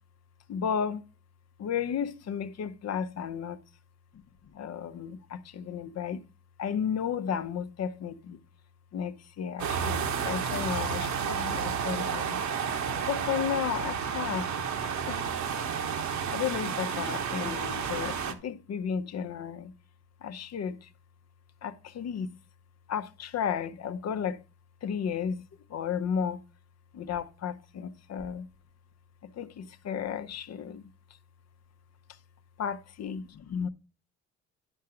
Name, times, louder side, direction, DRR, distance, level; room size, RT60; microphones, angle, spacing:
voice 1, 0.5-1.0 1.6-3.6 4.5-6.2 6.6-8.4 8.9-12.4 13.0-14.5 15.1-15.2 16.3-19.7 20.2-20.9 21.6-22.3 22.9-24.4 24.8-25.4 25.7-26.4 26.9-28.5 29.2-30.9 32.6-33.2 33.5-33.7, left 7 dB, 60° left, 0.8 m, -33 dB
sound 1, 9.6-18.3, right 6 dB, 70° right, 1.3 m, -31 dB
11.0 x 3.7 x 5.8 m
cardioid pair, 90°, 30 cm